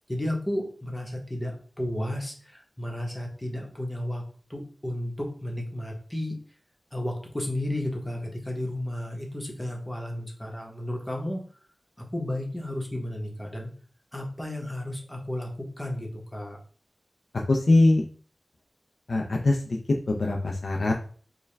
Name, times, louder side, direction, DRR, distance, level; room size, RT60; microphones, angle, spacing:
voice 1, 0.1-4.2 4.5-6.4 6.9-11.5 12.0-13.7 14.1-16.6, left 1 dB, 20° left, 1 dB, 1.0 m, -33 dB
voice 2, 17.5-18.0 19.1-19.6 20.1-20.9, left 2 dB, 70° left, 1 dB, 0.4 m, -22 dB
4.6 x 2.2 x 3.3 m, 0.44 s
wide cardioid pair, 75°, 0 cm